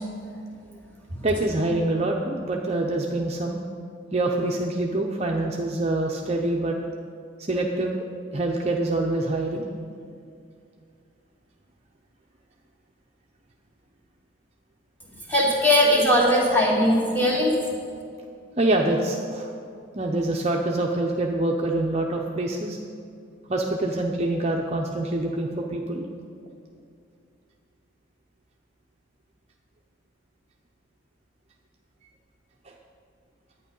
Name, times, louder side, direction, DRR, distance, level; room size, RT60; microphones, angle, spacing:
voice 1, 1.2-3.6 4.1-6.8 7.5-8.0 8.3-9.7 18.6-19.5 19.9-22.8 23.5-26.1 32.7-32.8, right 2 dB, 30° right, 0 dB, 0.6 m, -25 dB
voice 2, 15.3-17.5, left 1 dB, 10° left, -5 dB, 2.2 m, -19 dB
11.0 x 9.0 x 5.4 m, 2.3 s
head